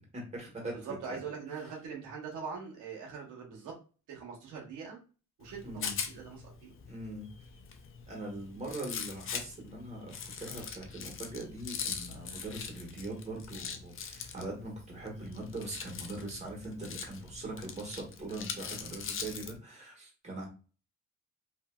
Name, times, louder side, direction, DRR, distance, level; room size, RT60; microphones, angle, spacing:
voice 1, 0.1-0.8 1.1-1.2 5.6-6.0 6.9-7.3 8.1-20.5, right 2 dB, 20° right, -1 dB, 1.4 m, -41 dB
voice 2, 0.7-3.7 4.1-5.0 5.4-6.7, right 5 dB, 85° right, -2 dB, 0.9 m, -42 dB
Rattle, 5.4-19.6, left 6 dB, 45° left, 0.5 m, -42 dB
2.7 x 2.6 x 2.2 m, 0.35 s
cardioid pair, 90°, 30 cm